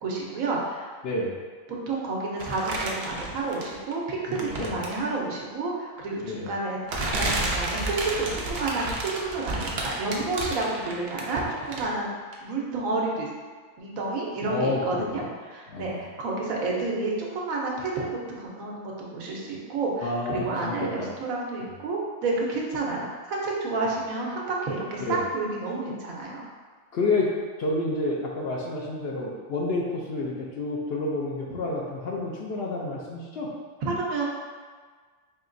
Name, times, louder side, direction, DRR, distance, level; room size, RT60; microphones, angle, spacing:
voice 1, 0.0-0.9 1.7-12.1 12.4-13.3 13.8-18.1 18.4-26.4 33.8-34.2, right 3 dB, 90° right, -2 dB, 1.2 m, -30 dB
voice 2, 1.0-1.4 4.3-4.8 6.2-6.5 14.5-15.3 15.7-16.0 20.0-21.1 25.0-25.2 26.9-27.3 27.6-33.5, left 2 dB, 65° left, -3 dB, 0.7 m, -29 dB
sound 1, 2.4-3.9 4.3-5.1 6.1-6.2 6.9-12.0 12.3-12.4, right 2 dB, 55° right, 0.5 m, -31 dB
4.8 x 2.9 x 2.5 m, 1.5 s
omnidirectional pair, 1.4 m